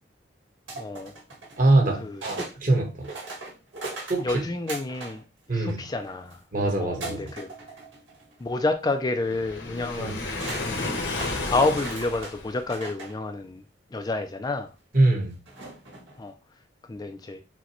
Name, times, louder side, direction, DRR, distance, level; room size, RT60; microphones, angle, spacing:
sound 1, 0.7-2.6 3.0-5.2 5.5-6.4 7.0-8.4 8.8-9.0 10.0-10.1 10.4-13.2 14.0-14.1 15.5-16.2, right 3 dB, 90° right, 1.6 m, -40 dB
voice 1, 0.8-1.1 2.0-2.4 4.2-5.2 5.5-6.4 6.8-7.5 8.4-10.3 10.6-11.1 11.5-13.6 13.9-14.7 16.2-16.3 16.9-17.4, left 2 dB, 20° left, 0.3 m, -29 dB
voice 2, 1.6-3.1 4.1-4.2 5.5-5.8 6.5-7.3 10.0-10.1 14.9-15.4, right 2 dB, 45° right, 1.3 m, -23 dB
Waves surf, 9.2-12.7, left 2 dB, 65° left, 0.9 m, -32 dB
6.2 x 2.2 x 2.9 m
head